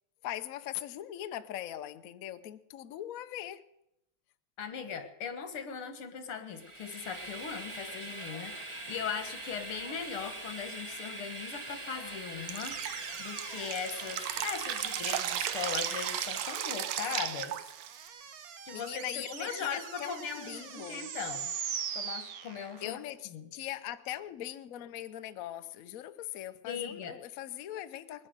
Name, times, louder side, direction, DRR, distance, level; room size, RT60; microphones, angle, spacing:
voice 1, 0.2-3.6 18.7-21.1 22.8-28.3, left 13 dB, 70° left, 0.8 m, -41 dB
voice 2, 4.6-17.6 18.7-21.5 21.9-23.0 23.3-23.5 26.7-27.1, left 7 dB, 90° left, 2.5 m, -39 dB
Train, 6.5-16.9, right 2 dB, 20° right, 1.0 m, -43 dB
Drip, 12.5-18.1, right 11 dB, 75° right, 1.5 m, -35 dB
sound 1, 12.7-23.0, right 7 dB, 55° right, 1.1 m, -42 dB
20.5 x 9.8 x 6.5 m
omnidirectional pair, 2.3 m